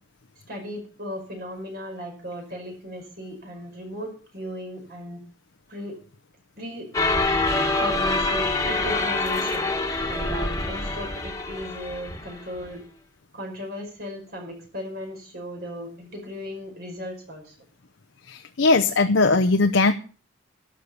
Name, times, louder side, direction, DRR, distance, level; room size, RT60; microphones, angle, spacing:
voice 1, 0.5-5.2 5.7-6.0 6.6-6.9 7.8-9.7 10.1-12.8 13.3-17.5, equal, 50° right, 2 dB, 5.4 m, -36 dB
sound 1, 6.9-12.7, left 2 dB, 15° left, 1.6 m, -25 dB
voice 2, 18.2-19.9, left 3 dB, 75° left, 7 dB, 0.8 m, -19 dB
12.0 x 6.5 x 8.0 m, 0.40 s
head